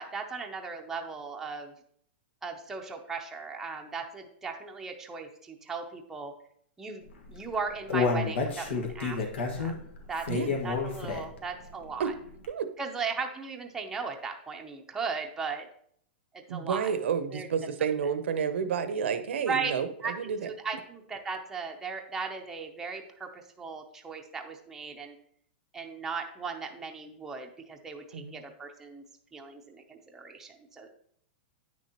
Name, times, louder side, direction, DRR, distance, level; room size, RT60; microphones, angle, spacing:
voice 1, 0.0-1.7 2.4-6.3 6.8-9.8 10.1-10.3 10.6-12.1 12.8-15.7 16.3-16.9 17.3-17.5 19.3-19.7 20.0-25.2 25.7-29.0 29.3-30.9, right 5 dB, 5° right, 1 dB, 0.6 m, -37 dB
Human voice, 7.3-11.5 11.9-12.0 12.4-12.5, left 4 dB, 90° left, 1.5 m, -30 dB
voice 2, 16.5-20.5 28.1-28.4, right 7 dB, 80° right, 11 dB, 0.8 m, -30 dB
9.2 x 6.2 x 2.9 m, 0.65 s
supercardioid pair, 165°, 6 cm